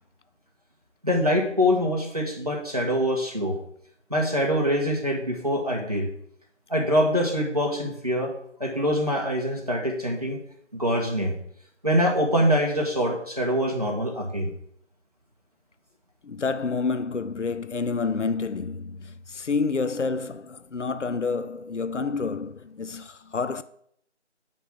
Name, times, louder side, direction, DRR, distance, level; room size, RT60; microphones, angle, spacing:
voice 1, 1.0-3.5 4.1-6.1 6.7-8.3 8.6-10.4 10.8-11.3 11.8-14.5, equal, 30° right, 1.3 m, -24 dB
voice 2, 16.2-23.6, left 4 dB, 75° left, 0.6 m, -29 dB
9.2 x 3.7 x 5.8 m
figure-of-eight pair, 175°, 37 cm